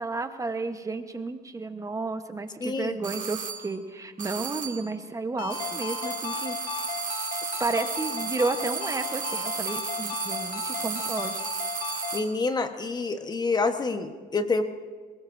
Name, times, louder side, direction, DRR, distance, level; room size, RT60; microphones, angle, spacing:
voice 1, 0.0-6.8 7.6-11.4, right 3 dB, 20° right, 8 dB, 1.0 m, -32 dB
voice 2, 2.6-2.9 12.1-14.6, left 3 dB, 25° left, 8 dB, 1.1 m, -27 dB
sound 1, 3.0-3.7 4.2-4.9 5.5-12.4, right 7 dB, 50° right, 1.8 m, -34 dB
Ringtone, 5.4-12.3, left 8 dB, 65° left, 1.2 m, -36 dB
21.5 x 20.0 x 2.6 m, 1.5 s
cardioid pair, 110°, 17 cm